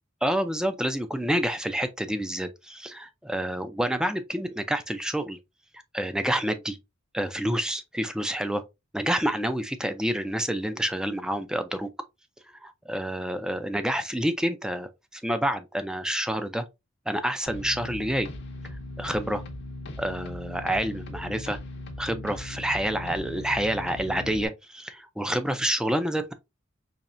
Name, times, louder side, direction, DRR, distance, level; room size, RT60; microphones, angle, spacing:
voice 1, 0.2-5.4 5.9-6.8 7.1-8.6 8.9-11.9 12.6-16.6 17.1-18.3 19.0-19.4 20.0-21.6 22.0-26.3, right 1 dB, 5° right, 0.3 m, -28 dB
sound 1, 17.5-24.5, left 1 dB, 60° left, 0.7 m, -39 dB
4.2 x 3.1 x 2.5 m
head